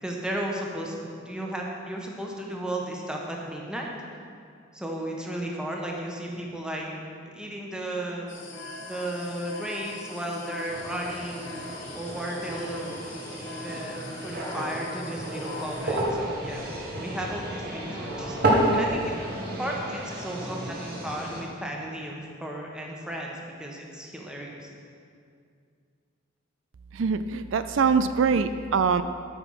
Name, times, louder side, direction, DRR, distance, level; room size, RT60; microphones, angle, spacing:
voice 1, 0.0-3.9 4.7-7.0 7.3-8.3 8.8-11.6 11.9-13.0 13.2-16.6 16.9-18.4 18.7-19.2 19.6-24.7, right 1 dB, 5° right, -1 dB, 1.3 m, -34 dB
sound 1, 8.3-16.0, left 1 dB, 85° left, 2.0 m, -41 dB
sound 2, 10.7-21.4, right 1 dB, 50° right, 2.2 m, -31 dB
voice 2, 26.9-29.0, right 5 dB, 80° right, 11 dB, 0.4 m, -23 dB
13.5 x 5.9 x 5.7 m, 2.3 s
head